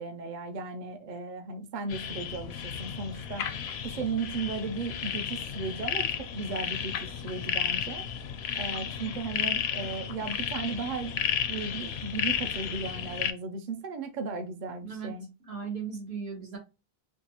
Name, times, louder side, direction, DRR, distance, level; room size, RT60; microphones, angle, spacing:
voice 1, 0.0-3.5 3.8-8.0 8.5-15.3, right 4 dB, 55° right, 0.6 m, -36 dB
sound 1, 1.9-13.3, left 8 dB, 85° left, 0.8 m, -33 dB
voice 2, 14.8-15.1 15.5-16.6, right 6 dB, 80° right, 1.6 m, -37 dB
3.5 x 2.4 x 2.8 m
omnidirectional pair, 1.0 m